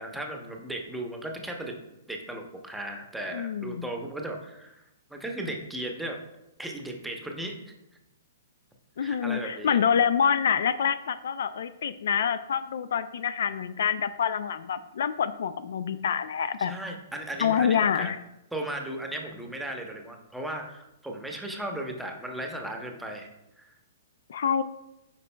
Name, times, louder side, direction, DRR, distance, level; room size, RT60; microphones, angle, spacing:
voice 1, 0.0-1.7 2.1-4.8 5.1-6.2 6.6-7.7 9.0-9.8 16.6-18.1 18.5-23.3 23.6-23.8, right 1 dB, 5° right, 2 dB, 0.8 m, -36 dB
voice 2, 3.3-3.9 9.0-16.7 17.4-18.2 24.3-24.6, left 7 dB, 70° left, 14 dB, 0.3 m, -26 dB
8.1 x 5.1 x 2.2 m, 0.88 s
hypercardioid pair, 135°, 0 cm